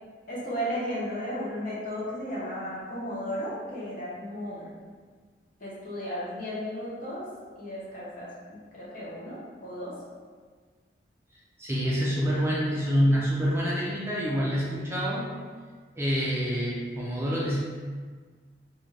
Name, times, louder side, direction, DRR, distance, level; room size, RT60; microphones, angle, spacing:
voice 1, 0.3-4.7 5.6-7.2 7.6-8.3 8.7-9.9 13.0-13.1, equal, 50° left, -7 dB, 0.8 m, -34 dB
voice 2, 11.6-15.2 16.0-17.6, equal, 15° right, -7 dB, 0.4 m, -26 dB
2.4 x 2.3 x 3.2 m, 1.6 s
head